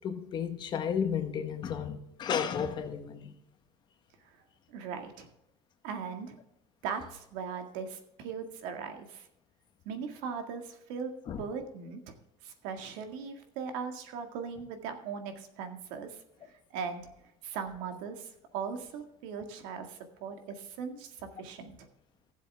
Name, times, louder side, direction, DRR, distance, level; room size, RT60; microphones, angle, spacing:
voice 1, 0.0-3.3 11.3-11.4, left 7 dB, 35° left, 1.2 m, -33 dB
voice 2, 4.7-5.3 5.8-6.4 6.8-9.3 9.9-11.1 11.4-12.1 12.4-17.0 17.4-21.9, right 6 dB, 85° right, 1.9 m, -39 dB
17.0 x 7.6 x 3.4 m
cardioid pair, 145°, 12 cm